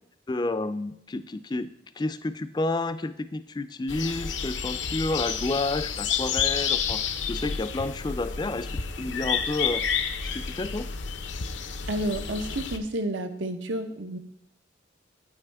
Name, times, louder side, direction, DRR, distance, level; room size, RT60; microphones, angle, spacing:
voice 1, 0.3-9.8 10.3-10.9, left 2 dB, 25° left, 12 dB, 0.3 m, -30 dB
sound 1, 3.9-12.8, left 7 dB, 75° left, 0.7 m, -30 dB
voice 2, 11.9-14.2, right 1 dB, 85° right, 7 dB, 0.9 m, -30 dB
9.3 x 8.9 x 3.4 m, 0.77 s
head